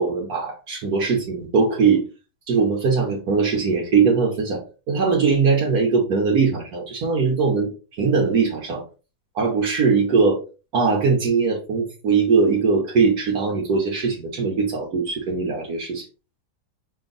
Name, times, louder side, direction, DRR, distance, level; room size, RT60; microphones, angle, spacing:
voice 1, 0.0-2.0 2.5-4.6 4.9-7.7 8.0-8.8 9.3-10.4 10.7-16.0, right 5 dB, 65° right, -1 dB, 1.4 m, -20 dB
5.2 x 2.6 x 3.8 m, 0.33 s
omnidirectional pair, 1.8 m